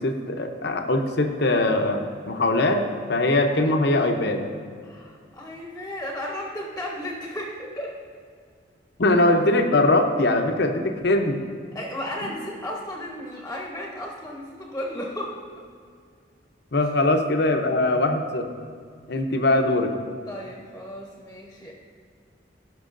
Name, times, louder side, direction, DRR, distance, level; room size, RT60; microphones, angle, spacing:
voice 1, 0.0-2.8 3.1-4.4 9.0-11.4 12.2-12.3 16.7-18.5 19.1-19.9, left 2 dB, 60° left, 5 dB, 0.8 m, -21 dB
voice 2, 4.8-8.0 11.7-15.6 16.7-16.9 20.3-21.7, left 1 dB, 10° left, -1 dB, 0.9 m, -34 dB
16.0 x 6.0 x 2.6 m, 2.1 s
head